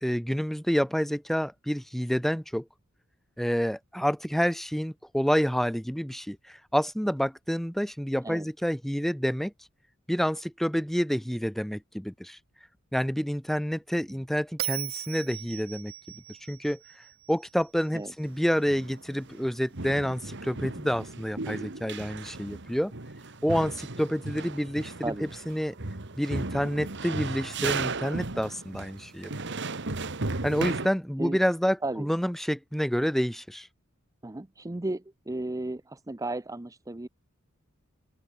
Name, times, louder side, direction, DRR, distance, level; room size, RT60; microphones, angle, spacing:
voice 1, 0.0-2.6 3.4-9.5 10.1-12.4 12.9-15.9 16.5-16.8 17.3-22.9 23.4-25.7 26.2-29.3 30.4-33.7, equal, ahead, 1.0 m, -28 dB
Bell, 14.6-17.8, right 14 dB, 75° right, 2.0 m, -38 dB
sound 1, 18.2-19.5 19.7-30.9, right 3 dB, 60° right, 1.9 m, -36 dB
voice 2, 25.0-25.3 31.2-31.4 31.8-32.1 34.2-37.1, right 2 dB, 15° right, 0.6 m, -34 dB
open air
head